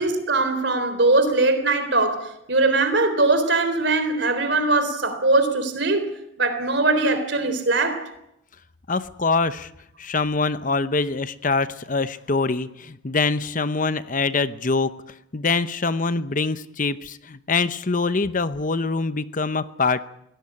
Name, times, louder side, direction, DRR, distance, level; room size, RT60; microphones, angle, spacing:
voice 1, 0.0-6.1 6.4-8.1, right 2 dB, 60° right, 3.8 m, -21 dB
voice 2, 8.9-9.7 10.0-14.9 15.3-20.1, left 4 dB, 40° left, 0.8 m, -24 dB
23.0 x 17.5 x 9.8 m
head